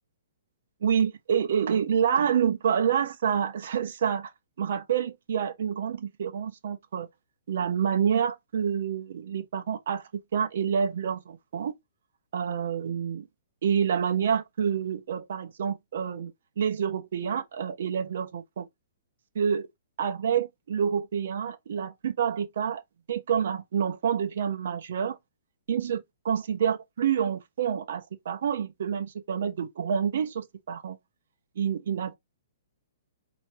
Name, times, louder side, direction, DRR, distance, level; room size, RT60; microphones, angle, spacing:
voice 1, 0.8-4.3 4.6-7.1 7.5-11.7 12.3-13.3 13.6-18.7 19.3-19.7 20.0-22.8 23.1-25.2 25.7-31.0 31.6-32.2, right 8 dB, 50° right, 1.0 m, -28 dB
5.8 x 3.1 x 3.0 m
hypercardioid pair, 180°, 0 cm